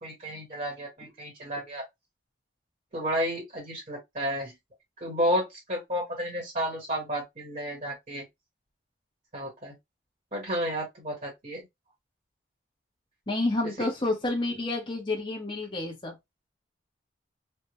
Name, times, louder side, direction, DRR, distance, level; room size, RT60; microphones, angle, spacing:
voice 1, 0.0-1.8 2.9-4.5 5.0-8.2 9.3-9.7 10.3-11.6, equal, 45° right, 1.2 m, -31 dB
voice 2, 13.3-16.1, left 2 dB, 30° left, 0.9 m, -29 dB
3.3 x 2.1 x 2.9 m
head